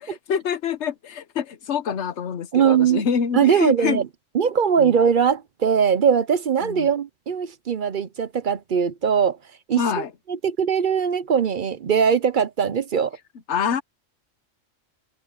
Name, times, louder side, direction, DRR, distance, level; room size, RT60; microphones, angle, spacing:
voice 1, 0.0-4.0 4.8-4.9 6.6-6.9 9.8-10.1 13.5-13.8, left 7 dB, 60° left, 1.2 m, -26 dB
voice 2, 2.5-3.0 3.3-4.1 4.3-9.4 9.7-10.0 10.3-13.2, right 7 dB, 50° right, 0.7 m, -20 dB
omnidirectional pair, 1.3 m